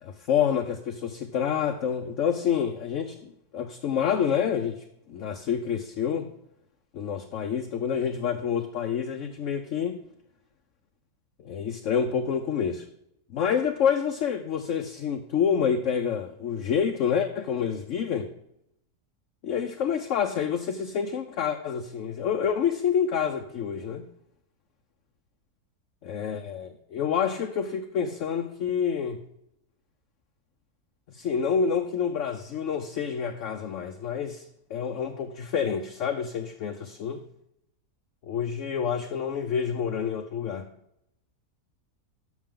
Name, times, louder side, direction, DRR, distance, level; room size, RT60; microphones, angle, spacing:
voice 1, 0.0-4.8 5.1-6.3 6.9-10.0 11.4-12.9 13.3-18.3 19.4-24.0 26.0-29.2 31.1-34.4 34.7-37.2 38.2-40.7, left 7 dB, 60° left, 0.9 m, -28 dB
12.0 x 6.3 x 3.7 m
omnidirectional pair, 1.7 m